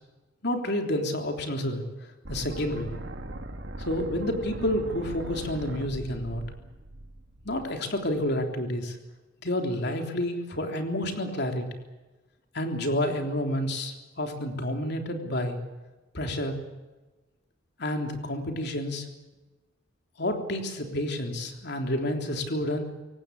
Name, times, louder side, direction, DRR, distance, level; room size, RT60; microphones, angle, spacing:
voice 1, 0.4-1.8 2.3-2.9 3.8-6.4 7.4-9.0 9.4-11.7 12.5-15.6 16.1-16.6 17.8-19.1 20.2-22.9, left 1 dB, 60° left, 4 dB, 3.5 m, -29 dB
sound 1, 2.2-8.2, right 1 dB, 65° right, 2.5 m, -40 dB
24.5 x 18.0 x 8.4 m, 1.2 s
head